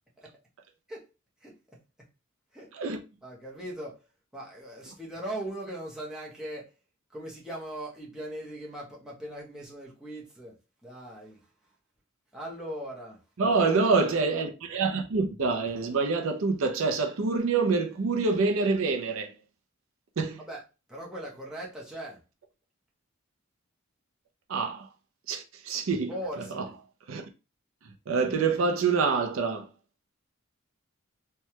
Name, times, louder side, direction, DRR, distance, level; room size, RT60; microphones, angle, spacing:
voice 1, 1.4-2.1 2.5-2.7 3.2-4.0 4.3-6.7 7.1-11.5 12.3-13.2 20.5-20.6 20.9-22.2 26.1-26.7, right 1 dB, 5° right, 0.7 m, -39 dB
voice 2, 13.4-19.3 20.2-20.4 24.5-24.9 25.3-26.1 26.5-26.6 27.1-27.2 27.8-29.7, right 4 dB, 70° right, 0.5 m, -26 dB
3.2 x 2.2 x 2.7 m
head